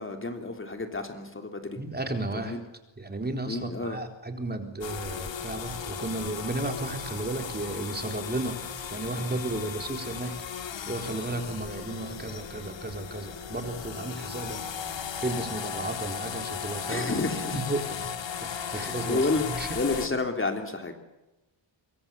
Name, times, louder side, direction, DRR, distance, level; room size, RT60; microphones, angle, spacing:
voice 1, 0.0-1.8 2.3-2.6 3.4-4.0 16.9-17.6 18.7-20.9, left 3 dB, 25° left, 5 dB, 3.3 m, -30 dB
voice 2, 1.8-2.6 3.0-8.6 8.9-10.3 10.9-14.6 14.8-17.1 17.5-18.1 18.4-19.7, right 2 dB, 20° right, 5 dB, 4.1 m, -33 dB
sound 1, 4.8-20.1, left 7 dB, 70° left, 2.9 m, -36 dB
26.0 x 24.0 x 7.2 m, 1.0 s
wide cardioid pair, 115°, 47 cm